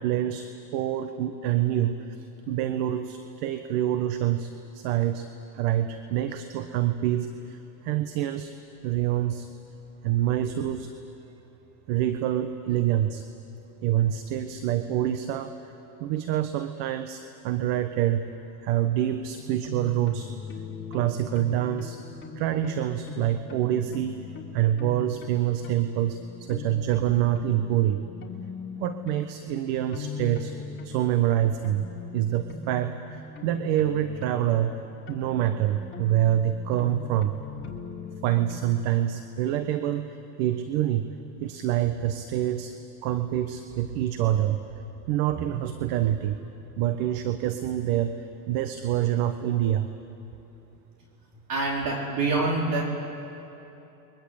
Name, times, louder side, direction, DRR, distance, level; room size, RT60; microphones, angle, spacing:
voice 1, 0.0-5.3 5.5-8.5 8.8-9.5 10.0-10.9 11.9-13.2 13.8-15.7 16.0-18.2 18.6-20.3 20.9-22.0 22.4-24.2 24.5-28.0 28.7-30.5 30.8-31.9 32.1-34.8 35.1-37.4 38.2-40.1 40.4-41.1 41.4-42.7 43.0-44.6 45.1-46.4 46.8-49.9, right 12 dB, 60° right, 9 dB, 1.4 m, -26 dB
sound 1, 19.4-38.6, left 5 dB, 25° left, 3.3 m, -41 dB
voice 2, 51.5-52.8, right 3 dB, 40° right, -1 dB, 4.5 m, -25 dB
29.5 x 23.0 x 8.1 m, 3.0 s
hypercardioid pair, 105°, 50 cm